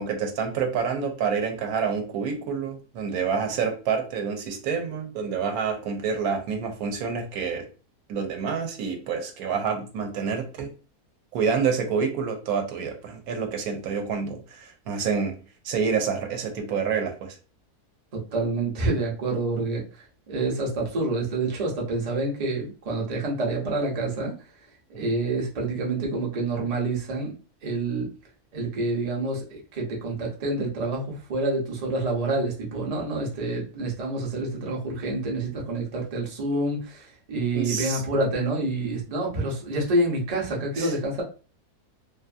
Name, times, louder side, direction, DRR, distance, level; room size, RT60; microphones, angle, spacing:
voice 1, 0.0-7.7 8.1-10.7 11.3-15.3 15.6-17.4 24.9-25.0 37.5-38.0 40.8-40.9, right 6 dB, 75° right, 4 dB, 1.0 m, -28 dB
voice 2, 18.1-24.3 25.0-27.3 27.6-28.1 28.5-41.2, right 2 dB, 45° right, -2 dB, 0.5 m, -27 dB
2.6 x 2.5 x 2.4 m, 0.36 s
omnidirectional pair, 1.7 m